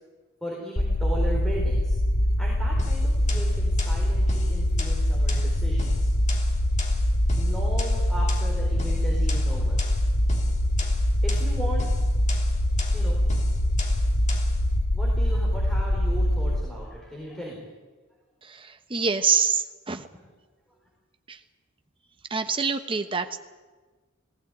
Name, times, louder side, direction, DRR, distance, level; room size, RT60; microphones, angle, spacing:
voice 1, 0.4-1.9 2.4-6.1 7.4-9.9 11.2-11.8 12.9-13.2 14.9-17.7 20.1-20.2, equal, ahead, -3 dB, 4.3 m, -37 dB
sound 1, 0.8-16.6, left 1 dB, 90° left, 1.6 m, -23 dB
sound 2, 2.8-14.6, left 2 dB, 35° left, 3.1 m, -38 dB
voice 2, 18.9-20.1 22.3-23.4, right 5 dB, 25° right, 8 dB, 1.1 m, -25 dB
19.0 x 16.5 x 9.2 m, 1.3 s
head